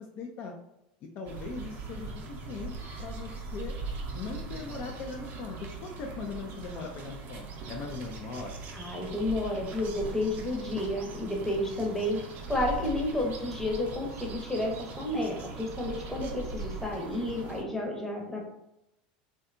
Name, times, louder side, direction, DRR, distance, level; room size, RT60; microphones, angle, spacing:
voice 1, 0.2-0.5 1.1-2.7 3.0-3.7 4.1-8.6, left 4 dB, 45° left, 1 dB, 0.3 m, -39 dB
sound 1, 1.2-17.6, right 3 dB, 45° right, 0.5 m, -40 dB
voice 2, 8.7-12.2 12.5-18.5, left 1 dB, 10° left, -1 dB, 0.7 m, -31 dB
2.7 x 2.2 x 2.5 m, 0.87 s
supercardioid pair, 110°, 4 cm